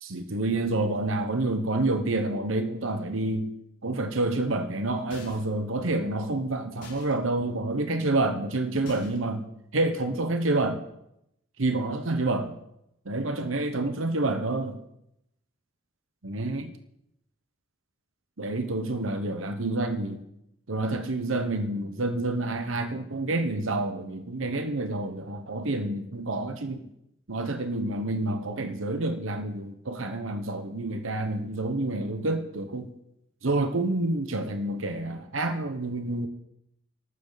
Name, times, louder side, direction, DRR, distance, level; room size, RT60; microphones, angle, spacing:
voice 1, 0.0-3.5 3.8-9.5 9.7-10.8 11.6-12.5 13.0-14.8 16.2-16.7 18.4-20.2 20.7-26.8 27.3-32.9 33.4-36.3, right 2 dB, 80° right, 1.1 m, -28 dB
sound 1, 5.1-5.6 6.8-7.1 8.9-9.4, left 3 dB, 40° left, 4.5 m, -47 dB
22.5 x 13.0 x 4.1 m
head